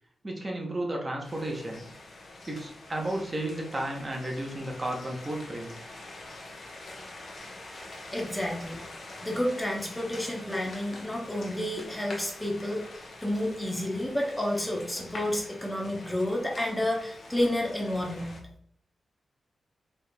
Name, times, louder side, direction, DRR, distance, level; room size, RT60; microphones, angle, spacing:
voice 1, 0.2-1.9 2.5-5.7, right 1 dB, 30° right, 0 dB, 0.8 m, -33 dB
sound 1, 1.2-18.4, left 2 dB, 55° left, 0.9 m, -45 dB
voice 2, 8.1-8.8 9.2-12.8 13.2-18.4, left 1 dB, 10° left, -1 dB, 0.8 m, -30 dB
4.3 x 3.2 x 2.2 m, 0.67 s
cardioid pair, 85°, 0 cm